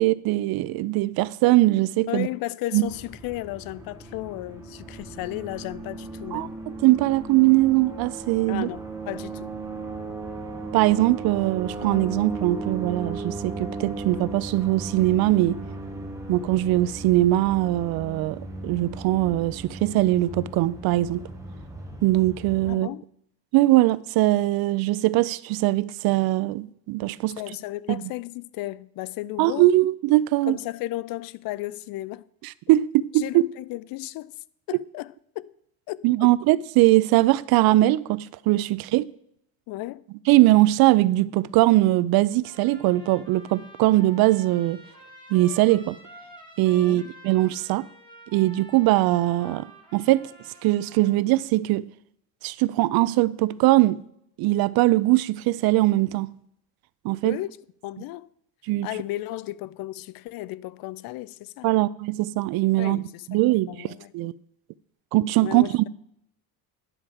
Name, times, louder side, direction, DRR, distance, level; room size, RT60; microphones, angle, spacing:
voice 1, 0.0-2.3 2.7-2.9 6.3-6.5 6.8-8.7 10.7-15.6 16.3-21.2 22.0-22.9 23.5-27.4 27.9-28.1 29.4-30.6 32.4-33.5 36.0-39.1 40.3-44.8 45.3-46.0 46.6-47.8 48.3-49.7 49.9-50.3 50.6-51.9 52.4-54.0 54.4-56.3 57.0-57.4 58.7-58.9 61.6-64.3 65.1-65.9, right 17 dB, 70° right, 0.5 m, -21 dB
voice 2, 2.1-6.5 8.5-9.5 22.7-23.0 27.4-29.7 30.4-32.3 33.1-35.5 35.9-36.3 39.7-40.0 46.8-47.1 57.2-57.5 57.8-58.3 58.8-61.7 62.8-63.4 63.7-64.1 65.4-65.8, left 17 dB, 65° left, 0.5 m, -34 dB
sound 1, 2.8-22.7, right 3 dB, 10° right, 1.5 m, -36 dB
Trumpet, 42.4-51.2, right 1 dB, 10° left, 2.0 m, -48 dB
10.0 x 4.8 x 7.4 m
cardioid pair, 160°, 38 cm